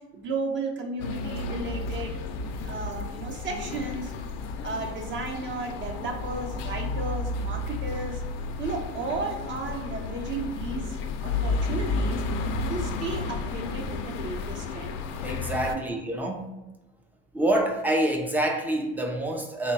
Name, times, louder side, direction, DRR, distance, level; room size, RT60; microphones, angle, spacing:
voice 1, 0.1-2.2 2.6-4.1 4.6-8.2 8.6-11.0 11.2-12.2 12.7-15.0 15.6-15.8, right 3 dB, 40° right, 2 dB, 0.8 m, -34 dB
sound 1, 1.0-15.7, left 3 dB, 75° left, 0.5 m, -32 dB
voice 2, 15.2-16.5 17.3-19.7, right 1 dB, 5° right, 3 dB, 0.4 m, -27 dB
3.7 x 2.2 x 3.9 m, 1.0 s
cardioid pair, 125°, 29 cm